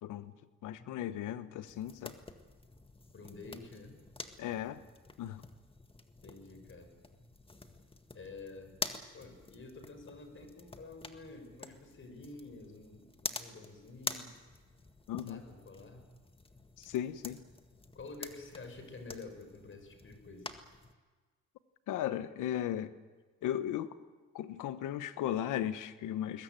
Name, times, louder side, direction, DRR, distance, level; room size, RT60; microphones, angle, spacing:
voice 1, 0.0-0.3 0.6-2.1 4.4-4.8 5.2-5.4 15.1-15.4 16.8-17.4 21.9-22.9 23.4-24.0 24.3-26.4, left 11 dB, 90° left, 13 dB, 1.2 m, -36 dB
sound 1, 1.7-20.9, left 2 dB, 20° left, 1.7 m, -47 dB
voice 2, 3.1-4.0 6.2-6.9 8.1-8.8 9.1-14.4 15.3-16.0 17.9-20.5, left 3 dB, 40° left, 8 dB, 5.4 m, -49 dB
21.0 x 20.5 x 9.1 m, 1.4 s
cardioid pair, 90°, 30 cm